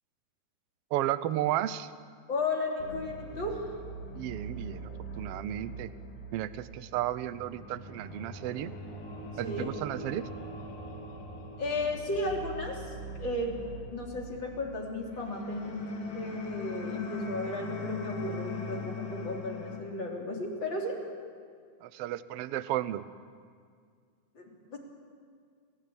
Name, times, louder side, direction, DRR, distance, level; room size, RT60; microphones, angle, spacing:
voice 1, 0.9-1.9 4.1-4.9 5.2-5.9 6.3-8.7 9.4-10.3 21.8-23.0, right 13 dB, 75° right, 14 dB, 1.4 m, -33 dB
voice 2, 2.3-3.7 9.4-9.7 11.6-15.9 16.1-20.9 24.3-24.8, left 2 dB, 40° left, 0 dB, 4.1 m, -34 dB
sound 1, 2.8-19.8, left 2 dB, 80° left, 3.9 m, -41 dB
30.0 x 16.5 x 8.8 m, 2.1 s
omnidirectional pair, 3.4 m